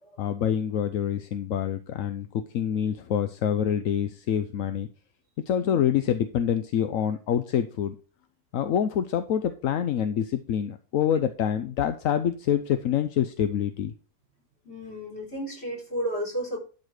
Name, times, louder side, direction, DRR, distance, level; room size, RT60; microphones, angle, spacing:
voice 1, 0.2-4.9 5.5-8.0 8.5-13.9, left 9 dB, 65° left, 10 dB, 1.0 m, -26 dB
voice 2, 14.6-16.6, equal, 40° left, 0 dB, 4.6 m, -33 dB
12.0 x 4.9 x 4.8 m, 0.37 s
omnidirectional pair, 1.7 m